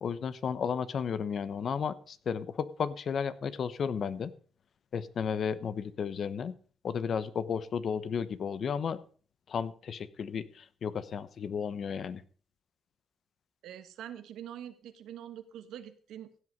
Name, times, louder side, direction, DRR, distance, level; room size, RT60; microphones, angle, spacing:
voice 1, 0.0-4.3 4.9-6.5 6.8-9.0 9.5-12.2, left 7 dB, 55° left, 15 dB, 1.0 m, -33 dB
voice 2, 13.6-16.4, right 10 dB, 80° right, 10 dB, 1.4 m, -45 dB
16.0 x 8.0 x 5.4 m, 0.42 s
cardioid pair, 90°, 0 cm